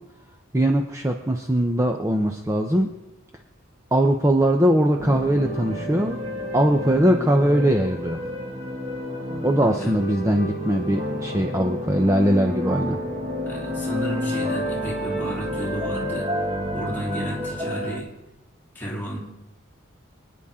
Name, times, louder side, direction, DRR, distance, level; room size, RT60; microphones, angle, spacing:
voice 1, 0.5-2.9 3.9-6.2 6.5-8.2 9.4-13.0, right 1 dB, 15° right, 3 dB, 0.7 m, -21 dB
sound 1, 5.0-18.0, equal, 30° right, 1.9 m, -29 dB
voice 2, 13.5-16.3 16.7-18.1 18.7-19.2, right 1 dB, 10° left, -4 dB, 3.3 m, -32 dB
26.0 x 10.0 x 3.7 m, 0.98 s
head